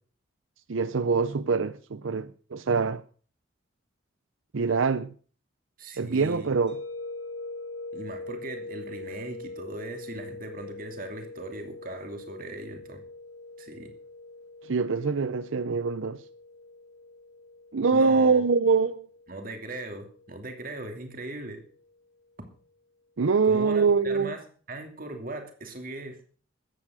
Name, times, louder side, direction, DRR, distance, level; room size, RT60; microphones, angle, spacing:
voice 1, 0.7-3.0 4.5-5.1 6.0-6.8 14.6-16.2 17.7-19.1 23.2-24.3, right 4 dB, 85° right, 0.6 m, -24 dB
voice 2, 5.8-6.6 7.9-13.0 13.6-13.9 17.9-18.4 19.3-21.6 23.4-24.4 24.7-26.2, right 2 dB, 45° right, 2.7 m, -39 dB
sound 1, 6.7-21.6, left 2 dB, 60° left, 4.5 m, -43 dB
14.0 x 9.8 x 6.3 m
head